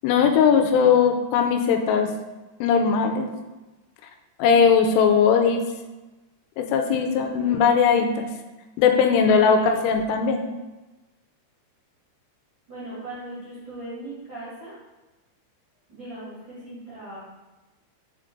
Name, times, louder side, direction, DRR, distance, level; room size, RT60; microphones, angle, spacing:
voice 1, 0.0-2.1 2.6-3.3 4.4-5.6 6.6-8.2 8.8-10.4, left 6 dB, 90° left, 5 dB, 3.1 m, -19 dB
voice 2, 6.8-7.6 9.2-9.7 12.7-14.8 15.9-17.2, right 1 dB, 55° right, -11 dB, 1.3 m, -39 dB
6.6 x 4.4 x 3.9 m, 1.1 s
omnidirectional pair, 5.6 m